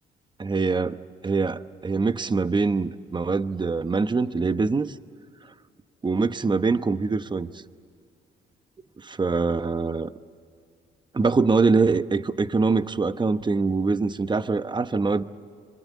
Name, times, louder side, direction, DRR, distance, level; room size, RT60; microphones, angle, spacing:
voice 1, 0.4-1.0 1.2-4.9 6.0-7.5 9.0-10.1 11.1-15.2, right 4 dB, 25° right, 12 dB, 0.9 m, -24 dB
25.5 x 24.5 x 8.5 m, 2.3 s
cardioid pair, 90°, 20 cm